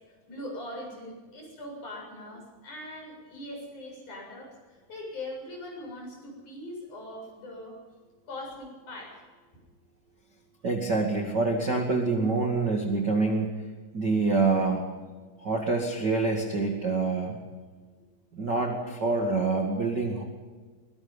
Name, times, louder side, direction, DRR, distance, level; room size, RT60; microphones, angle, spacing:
voice 1, 0.3-7.8 8.3-9.2, left 1 dB, 45° left, 0 dB, 8.9 m, -41 dB
voice 2, 10.6-13.5 13.9-14.8 15.4-17.4 18.3-20.2, right 3 dB, 35° right, 2 dB, 1.9 m, -26 dB
23.5 x 21.0 x 5.5 m, 1.4 s
omnidirectional pair, 4.7 m